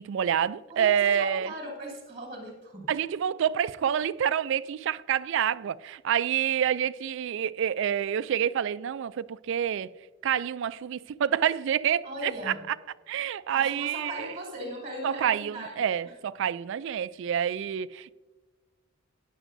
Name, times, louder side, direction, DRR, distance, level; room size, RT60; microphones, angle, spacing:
voice 1, 0.0-1.5 2.9-9.9 10.2-12.8 13.1-14.3 15.0-18.1, right 9 dB, 65° right, 0.3 m, -28 dB
voice 2, 0.7-2.9 12.0-12.6 13.5-15.9, right 1 dB, 30° right, 2.9 m, -38 dB
14.0 x 10.0 x 2.6 m
head